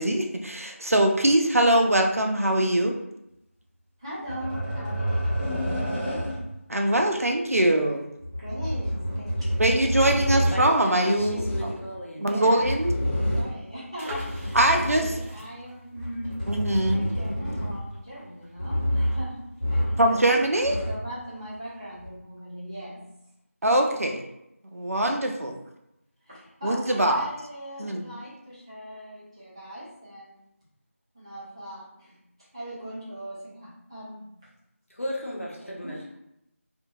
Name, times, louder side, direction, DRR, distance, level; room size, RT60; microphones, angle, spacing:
voice 1, 0.0-3.0 6.7-8.1 9.6-11.7 12.2-12.9 14.5-15.0 16.5-17.1 20.0-20.8 23.6-24.2 24.7-25.6 26.6-27.3 27.8-28.1, right 1 dB, 75° right, 0.5 m, -22 dB
voice 2, 4.0-6.4 8.4-10.0 12.3-12.6 13.3-16.5 16.9-20.4 20.8-23.3 25.1-25.5 26.2-30.4 31.1-34.4 35.6-36.2, equal, 20° right, 0.9 m, -40 dB
sound 1, 4.3-6.6 8.2-10.6 11.2-11.8 12.6-13.6 14.1-15.3 15.9-18.0 18.6-19.3 19.6-20.1 20.4-21.1 22.0-22.1, equal, 25° left, 1.4 m, -28 dB
voice 3, 10.5-12.6 34.9-36.0, equal, 65° left, 0.8 m, -35 dB
sound 2, 13.9-19.6 19.9-20.0 20.2-20.5, equal, 5° left, 0.8 m, -44 dB
2.7 x 2.6 x 2.4 m
figure-of-eight pair, 170°, 8 cm